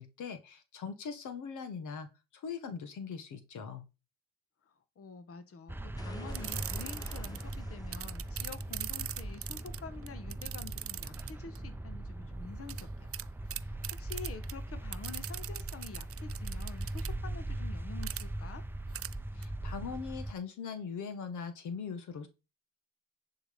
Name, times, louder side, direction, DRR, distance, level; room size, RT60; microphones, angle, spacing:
voice 1, 0.0-2.1 2.4-3.8 19.3-22.3, left 6 dB, 75° left, 1.7 m, -41 dB
voice 2, 4.6-13.1 13.5-18.6, left 5 dB, 50° left, 1.4 m, -48 dB
sound 1, 5.7-20.3, right 1 dB, 5° right, 0.6 m, -40 dB
sound 2, 6.0-10.7, left 1 dB, 10° left, 1.1 m, -52 dB
sound 3, 6.3-7.5 7.9-11.6 12.7-12.8 13.1-13.2 13.5-14.5 14.9-17.1 18.0-18.2 18.9-19.1 19.4-19.5, right 12 dB, 50° right, 0.5 m, -40 dB
10.0 x 4.7 x 5.3 m
cardioid pair, 90°, 30 cm